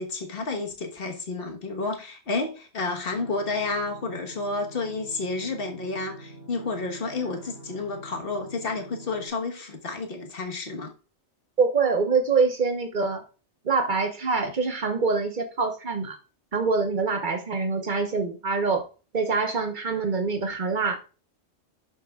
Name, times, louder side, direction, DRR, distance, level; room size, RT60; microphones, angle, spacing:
voice 1, 0.0-10.9, left 3 dB, 55° left, 1.5 m, -31 dB
sound 1, 3.1-9.3, right 2 dB, 30° left, 4.3 m, -45 dB
voice 2, 11.6-13.2 13.6-16.2 16.5-18.9 19.1-21.0, right 4 dB, 45° right, 1.2 m, -25 dB
11.5 x 6.9 x 2.4 m
omnidirectional pair, 1.2 m